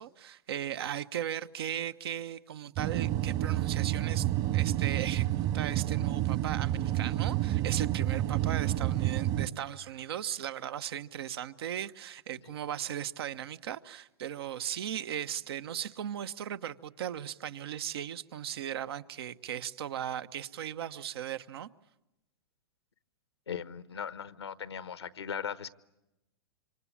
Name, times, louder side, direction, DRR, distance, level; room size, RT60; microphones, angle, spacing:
voice 1, 0.0-21.7, right 10 dB, 70° right, 1.1 m, -37 dB
sound 1, 2.8-9.5, right 14 dB, 45° right, 1.8 m, -29 dB
voice 2, 23.5-25.7, left 7 dB, 90° left, 1.2 m, -38 dB
27.0 x 25.5 x 8.6 m
hypercardioid pair, 110°, 13 cm